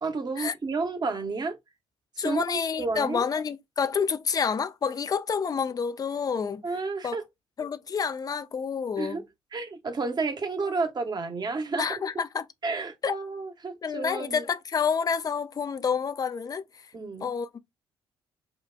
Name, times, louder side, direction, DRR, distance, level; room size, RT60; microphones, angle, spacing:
voice 1, 0.0-1.6 2.2-2.4 2.8-3.2 6.6-7.2 9.0-9.2 9.5-11.9 12.6-14.4 16.9-17.3, right 3 dB, 30° right, 0.9 m, -31 dB
voice 2, 2.2-6.6 7.0-7.2 7.6-9.2 11.8-12.4 13.0-13.2 13.8-16.9 17.2-17.6, left 6 dB, 25° left, 0.5 m, -28 dB
5.7 x 2.2 x 2.3 m
figure-of-eight pair, 45°, 14 cm